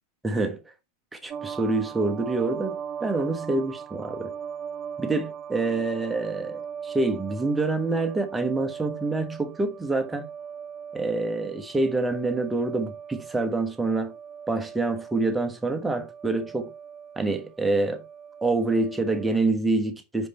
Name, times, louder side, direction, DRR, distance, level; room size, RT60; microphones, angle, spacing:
voice 1, 0.2-0.6 1.1-4.3 5.0-10.3 10.9-14.1 14.5-16.7 17.2-18.0 18.4-20.3, right 3 dB, 10° right, 1.2 m, -26 dB
sound 1, 1.3-19.4, right 7 dB, 30° right, 0.3 m, -40 dB
5.4 x 5.1 x 4.2 m
figure-of-eight pair, 90°, 0 cm